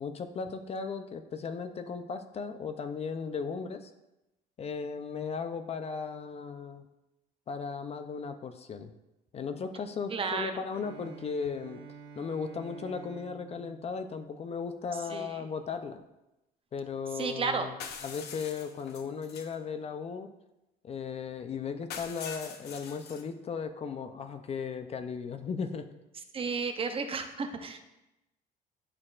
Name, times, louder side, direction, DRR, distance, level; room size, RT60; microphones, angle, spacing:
voice 1, 0.0-3.9 4.6-6.9 7.5-8.9 9.3-11.8 12.2-16.0 16.7-20.3 20.8-25.9, left 5 dB, 35° left, 9 dB, 0.5 m, -36 dB
voice 2, 10.1-10.6 15.1-15.4 17.1-17.7 26.3-27.8, right 5 dB, 35° right, 7 dB, 0.6 m, -33 dB
Bowed string instrument, 10.7-14.8, right 6 dB, 60° right, 0.9 m, -50 dB
sound 1, 17.8-19.6 21.9-23.2, left 6 dB, 75° left, 0.8 m, -43 dB
11.0 x 4.2 x 2.4 m, 0.94 s
cardioid pair, 110°, 17 cm